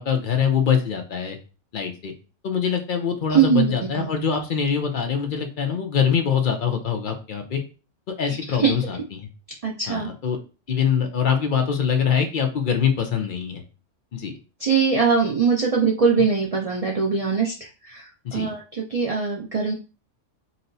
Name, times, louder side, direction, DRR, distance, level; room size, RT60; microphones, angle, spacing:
voice 1, 0.0-1.4 1.7-2.1 2.4-7.6 8.2-9.3 9.9-10.4 10.7-13.6 14.1-14.4 18.2-18.5, left 7 dB, 55° left, 4 dB, 0.6 m, -24 dB
voice 2, 3.3-3.6 4.0-4.1 8.6-8.7 9.6-10.1 14.6-17.5 17.8-19.7, right 5 dB, 65° right, -2 dB, 0.3 m, -21 dB
4.0 x 2.0 x 2.6 m, 0.33 s
omnidirectional pair, 1.3 m